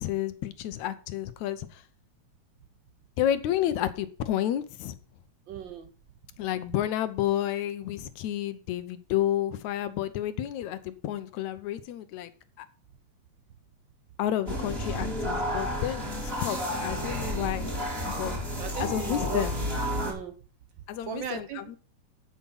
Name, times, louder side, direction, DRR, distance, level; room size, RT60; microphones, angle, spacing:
voice 1, 0.0-1.8 3.2-5.0 6.4-12.3 12.6-12.7 14.2-17.7 18.0-18.3 18.8-19.5 20.9-21.8, left 12 dB, 80° left, 12 dB, 2.1 m, -30 dB
voice 2, 5.5-5.9 18.6-19.5 20.0-20.3 21.1-21.6, right 7 dB, 65° right, 9 dB, 1.2 m, -36 dB
sound 1, 14.5-20.1, equal, 20° right, 3.1 m, -31 dB
12.0 x 5.9 x 5.6 m, 0.40 s
omnidirectional pair, 3.3 m